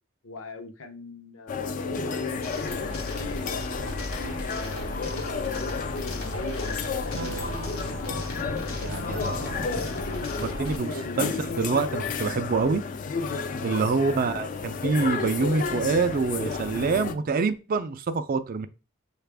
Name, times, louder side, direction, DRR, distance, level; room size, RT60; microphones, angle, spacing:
voice 1, 0.2-2.9 3.2-7.6 8.8-9.8 10.3-11.5 13.5-13.8, left 1 dB, 65° left, 6 dB, 0.7 m, -41 dB
sound 1, 1.5-17.1, left 5 dB, 40° left, 0.3 m, -32 dB
sound 2, 2.4-10.8, left 1 dB, 80° left, 1.0 m, -36 dB
Acoustic guitar / Strum, 7.1-11.9, right 4 dB, 85° right, 0.6 m, -44 dB
voice 2, 8.8-9.5 10.4-11.3 11.6-12.8 13.6-18.7, right 4 dB, 40° right, 10 dB, 0.4 m, -26 dB
6.5 x 2.4 x 3.4 m, 0.32 s
head